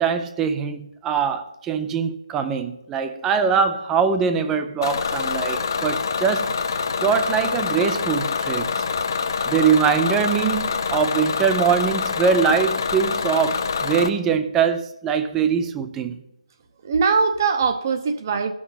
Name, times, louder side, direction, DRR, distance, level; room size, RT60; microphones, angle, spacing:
voice 1, 0.0-6.6 7.0-8.7 9.5-16.2, right 6 dB, 10° right, 0.4 m, -22 dB
Bus / Engine, 4.8-14.1, left 5 dB, 35° left, 0.6 m, -25 dB
voice 2, 16.8-18.5, right 5 dB, 30° right, 0.8 m, -22 dB
17.0 x 6.0 x 4.0 m
figure-of-eight pair, 165°, 3 cm